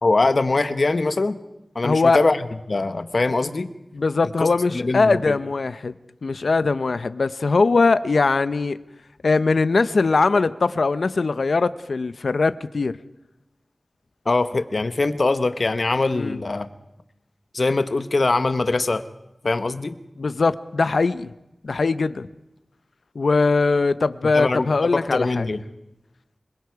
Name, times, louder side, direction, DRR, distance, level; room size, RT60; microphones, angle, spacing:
voice 1, 0.0-1.4 1.7-3.7 4.4-4.5 4.7-5.4 14.2-16.7 17.5-19.0 19.4-19.9 24.3-25.6, left 3 dB, 65° left, 10 dB, 1.1 m, -22 dB
voice 2, 1.8-2.2 3.9-5.9 6.2-8.8 9.2-12.9 16.1-16.4 20.2-21.3 21.6-22.3 23.2-25.5, left 3 dB, 85° left, 14 dB, 0.6 m, -21 dB
26.0 x 22.0 x 4.7 m, 0.91 s
wide cardioid pair, 60°, 0 cm